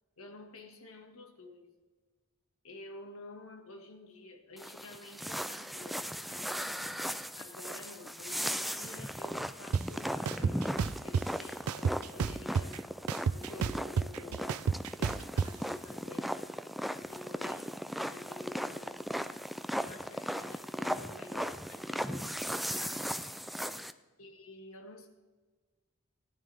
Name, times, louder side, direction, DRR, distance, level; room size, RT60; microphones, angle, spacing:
voice 1, 0.2-1.7 2.6-6.6 7.4-12.8 13.3-16.3 17.1-19.2 19.8-22.5 22.8-23.1 24.2-25.1, left 2 dB, 65° left, 3 dB, 1.8 m, -50 dB
sound 1, 4.6-23.9, equal, ahead, 0.3 m, -37 dB
sound 2, 9.7-9.8 10.2-11.2 11.7-12.8 13.1-15.5, right 6 dB, 75° right, 0.4 m, -30 dB
18.5 x 11.0 x 3.5 m, 1.3 s
head